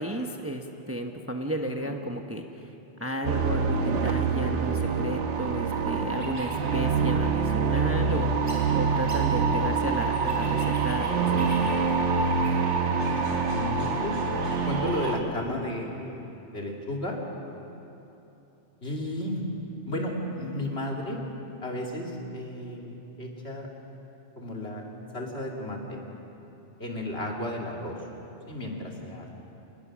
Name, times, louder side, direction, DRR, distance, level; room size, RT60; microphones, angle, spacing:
voice 1, 0.0-2.7 3.0-8.3 8.7-11.3, right 1 dB, 10° right, 4 dB, 1.0 m, -33 dB
sound 1, 3.2-15.2, right 5 dB, 70° right, 1.4 m, -26 dB
sound 2, 6.1-15.2, equal, 35° right, 4.6 m, -46 dB
voice 2, 13.1-14.4 14.6-16.2 16.5-17.2 18.8-19.5 19.9-21.2 21.6-23.7 24.4-24.8 25.1-26.0 26.8-28.0 28.5-29.3, left 1 dB, 60° left, -1 dB, 3.0 m, -33 dB
27.5 x 20.0 x 6.2 m, 3.0 s
omnidirectional pair, 1.2 m